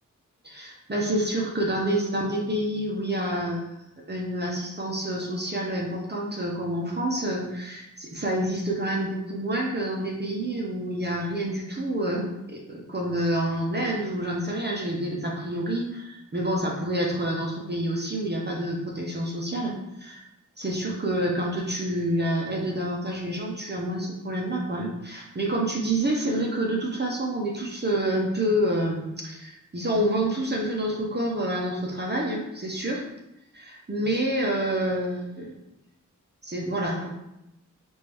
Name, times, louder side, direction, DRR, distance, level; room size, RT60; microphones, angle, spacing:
voice 1, 0.4-3.7 4.1-20.2 20.6-33.0 33.6-35.6 36.4-37.1, right 1 dB, 30° right, -2 dB, 0.8 m, -28 dB
5.1 x 2.6 x 3.4 m, 0.87 s
wide cardioid pair, 70°, 32 cm